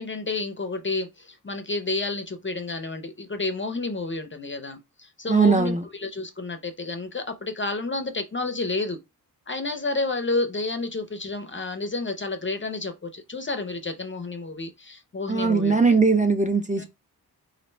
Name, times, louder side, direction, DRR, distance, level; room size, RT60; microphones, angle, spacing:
voice 1, 0.0-9.0 9.5-15.8 16.8-16.9, left 3 dB, 30° left, 0.5 m, -30 dB
voice 2, 5.3-5.8 15.3-16.8, right 4 dB, 20° right, 0.5 m, -20 dB
4.2 x 2.5 x 3.2 m
wide cardioid pair, 120°, 38 cm